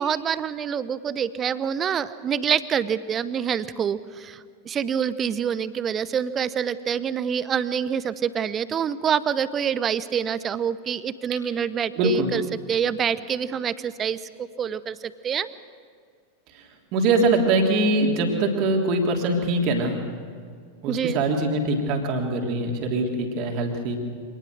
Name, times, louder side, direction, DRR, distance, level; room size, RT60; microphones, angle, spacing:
voice 1, 0.0-12.4 12.7-15.5 20.9-21.2, right 8 dB, 25° right, 16 dB, 0.8 m, -26 dB
voice 2, 11.9-12.3 16.5-16.6 16.9-20.0 20.8-24.0, right 2 dB, 40° right, 2 dB, 3.3 m, -23 dB
25.5 x 19.0 x 6.3 m, 2.1 s
figure-of-eight pair, 90°, 0 cm